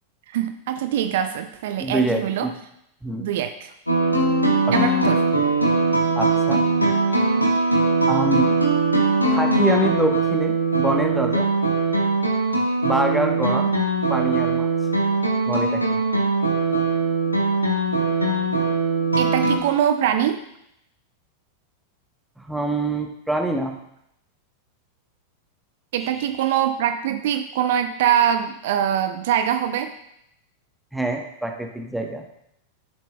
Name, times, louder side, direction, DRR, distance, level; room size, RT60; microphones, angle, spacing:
voice 1, 0.3-2.5 3.2-3.7 4.7-5.2 19.2-20.4 25.9-29.9, right 10 dB, 55° right, 8 dB, 0.4 m, -23 dB
voice 2, 1.8-2.5 3.0-3.3 4.7-4.8 6.2-6.6 8.1-8.5 9.3-11.5 12.8-13.7 14.1-14.7 15.5-16.0 22.4-23.8 26.0-26.3 30.9-32.2, right 1 dB, 5° right, 2 dB, 1.1 m, -25 dB
sound 1, 3.9-19.6, right 3 dB, 85° left, 1.2 m, -21 dB
12.5 x 7.3 x 2.2 m, 0.78 s
figure-of-eight pair, 90°, 0 cm